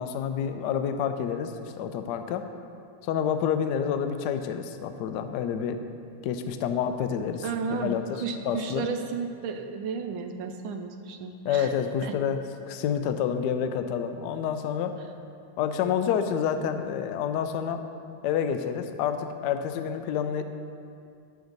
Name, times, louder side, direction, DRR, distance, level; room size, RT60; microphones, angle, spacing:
voice 1, 0.0-2.4 3.0-5.8 6.2-7.4 7.7-8.0 8.4-8.9 11.4-12.4 12.6-14.9 15.6-17.8 18.2-20.4, left 8 dB, 85° left, 8 dB, 0.9 m, -28 dB
voice 2, 7.4-11.7 12.0-12.2, right 5 dB, 75° right, 6 dB, 1.3 m, -33 dB
10.0 x 7.9 x 3.9 m, 2.4 s
omnidirectional pair, 2.4 m